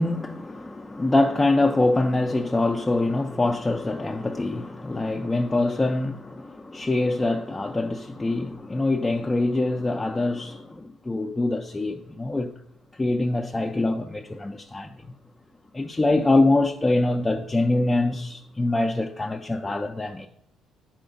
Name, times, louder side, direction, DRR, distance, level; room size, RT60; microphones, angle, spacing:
voice 1, 0.0-12.5 13.0-15.0 15.7-20.3, left 2 dB, 15° left, 0.3 m, -24 dB
10.0 x 4.2 x 3.8 m
cardioid pair, 125°, 0 cm